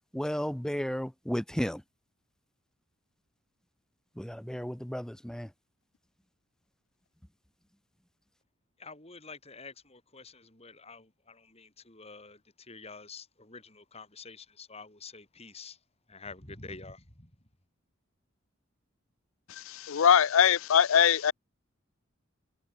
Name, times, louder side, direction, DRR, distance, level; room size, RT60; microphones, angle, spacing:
voice 1, 0.1-1.8 4.2-5.5, equal, 5° left, 0.5 m, -33 dB
voice 2, 8.8-15.8 16.1-17.3, left 4 dB, 30° left, 5.2 m, -48 dB
voice 3, 19.9-21.3, left 8 dB, 80° left, 0.5 m, -21 dB
head